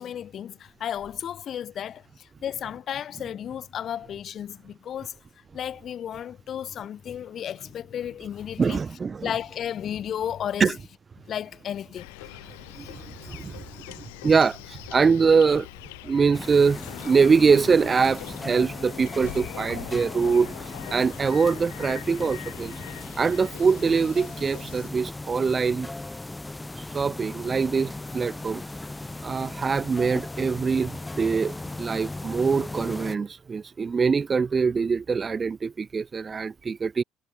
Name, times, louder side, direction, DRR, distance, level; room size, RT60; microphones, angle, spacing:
voice 1, 0.0-5.1 5.5-8.8 9.2-10.8 11.3-12.2, left 9 dB, 50° left, 4.8 m, -33 dB
voice 2, 8.6-9.3 10.6-10.7 12.8-15.7 16.0-22.7 23.2-25.9 26.8-28.6 29.2-37.0, right 5 dB, 30° right, 1.0 m, -23 dB
sound 1, 12.0-24.9, left 26 dB, 75° left, 3.1 m, -42 dB
sound 2, 16.3-33.2, left 2 dB, 15° left, 6.7 m, -37 dB
hypercardioid pair, 60°, 0 cm